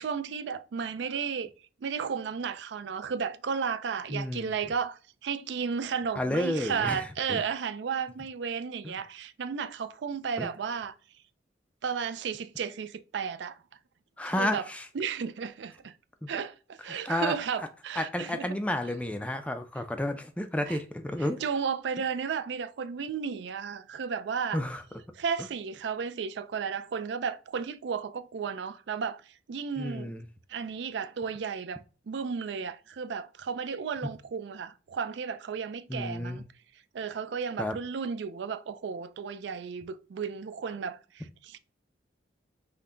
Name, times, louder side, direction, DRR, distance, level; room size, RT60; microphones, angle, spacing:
voice 1, 0.0-1.5 1.8-11.0 11.8-13.6 14.2-14.6 14.9-15.9 16.3-18.5 20.7-20.8 21.4-24.6 25.2-29.2 29.5-30.1 30.5-31.8 32.1-36.4 36.9-41.6, right 6 dB, 65° right, 0.4 m, -33 dB
voice 2, 4.1-4.5 6.2-7.4 8.8-8.9 10.4-10.5 14.2-14.9 16.2-16.3 17.0-17.4 18.0-21.4 24.5-24.8 29.8-30.2 35.9-36.5 37.6-37.8, left 1 dB, 5° left, 0.3 m, -31 dB
5.7 x 2.2 x 3.7 m
head